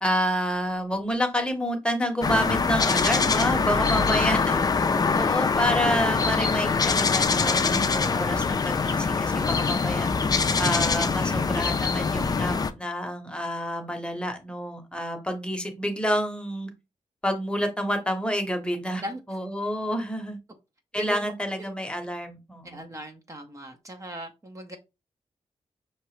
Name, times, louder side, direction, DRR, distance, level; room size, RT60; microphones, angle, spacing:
voice 1, 0.0-4.6 5.2-10.1 10.6-16.7 17.2-19.0 19.3-20.4 20.9-22.8, equal, 10° left, 0.9 m, -28 dB
sound 1, 2.2-12.7, left 4 dB, 35° left, 0.4 m, -24 dB
voice 2, 20.9-21.3 22.6-24.8, equal, 30° right, 0.7 m, -38 dB
5.7 x 2.9 x 3.1 m
wide cardioid pair, 115°, 12 cm